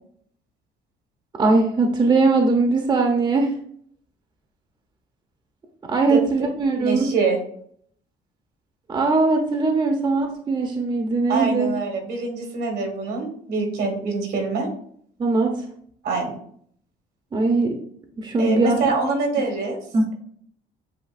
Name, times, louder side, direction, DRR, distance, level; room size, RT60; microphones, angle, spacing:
voice 1, 1.4-3.5 5.9-7.1 8.9-11.7 15.2-15.6 17.3-17.8 18.2-18.9 19.9-20.1, right 3 dB, 25° right, 3 dB, 0.7 m, -20 dB
voice 2, 6.7-7.4 11.3-14.7 16.0-16.4 18.4-19.8, right 4 dB, 75° right, 3 dB, 1.5 m, -24 dB
7.8 x 2.6 x 2.5 m, 0.63 s
cardioid pair, 110°, 17 cm